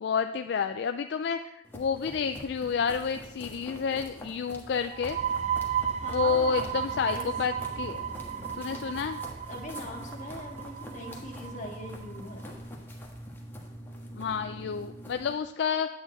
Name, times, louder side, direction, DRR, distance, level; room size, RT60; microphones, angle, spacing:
voice 1, 0.0-5.2 6.1-8.1 8.6-9.2 14.1-15.9, left 6 dB, 65° left, 8 dB, 0.4 m, -30 dB
sound 1, 1.6-15.3, equal, 15° left, 1.4 m, -44 dB
sound 2, 4.9-12.3, right 8 dB, 40° right, 0.4 m, -34 dB
voice 2, 6.0-7.3 9.4-12.5, left 1 dB, 40° left, 0 dB, 1.7 m, -41 dB
8.8 x 8.6 x 4.0 m, 0.86 s
head